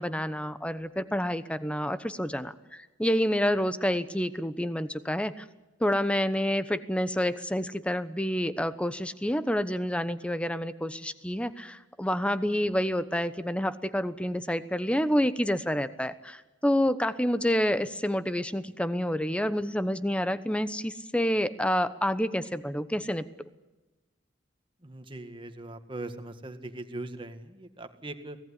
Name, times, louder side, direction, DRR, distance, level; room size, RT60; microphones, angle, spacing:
voice 1, 0.0-5.4 5.8-23.3, equal, 5° left, 12 dB, 1.0 m, -28 dB
voice 2, 24.8-28.4, right 2 dB, 30° right, 8 dB, 1.8 m, -40 dB
24.0 x 18.0 x 10.0 m, 1.1 s
head